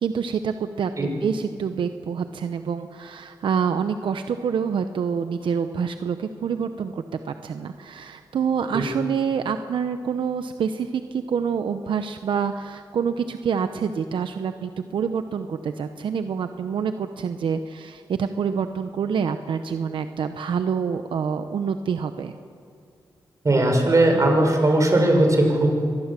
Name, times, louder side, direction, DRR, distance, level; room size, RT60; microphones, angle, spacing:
voice 1, 0.0-22.3, right 6 dB, 85° right, 8 dB, 0.8 m, -27 dB
voice 2, 23.4-25.7, right 1 dB, 40° right, 2 dB, 6.6 m, -18 dB
24.5 x 19.5 x 7.6 m, 2.3 s
cardioid pair, 60°, 8 cm